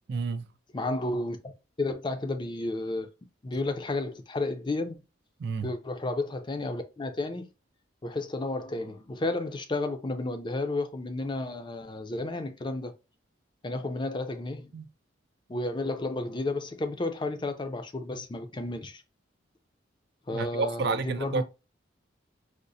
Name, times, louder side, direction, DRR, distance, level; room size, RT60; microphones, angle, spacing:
voice 1, 0.1-0.5 5.4-5.7 14.7-14.9 20.3-21.4, right 4 dB, 55° right, 0.4 m, -30 dB
voice 2, 0.7-1.5 1.8-3.1 3.4-5.0 5.6-7.5 8.0-12.9 13.6-14.8 15.5-19.0 20.3-21.4, left 2 dB, 25° left, 0.4 m, -32 dB
4.8 x 2.0 x 2.6 m
head